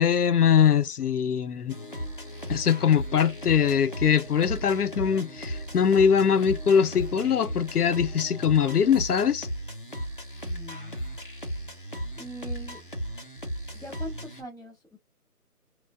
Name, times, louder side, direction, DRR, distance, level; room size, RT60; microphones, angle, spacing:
voice 1, 0.0-1.8 2.5-9.5, left 7 dB, 75° left, 0.7 m, -22 dB
sound 1, 1.7-14.4, equal, 35° left, 0.6 m, -36 dB
voice 2, 10.4-11.0 12.2-12.8 13.7-15.0, equal, ahead, 1.9 m, -42 dB
4.1 x 2.2 x 2.6 m
figure-of-eight pair, 165°, 46 cm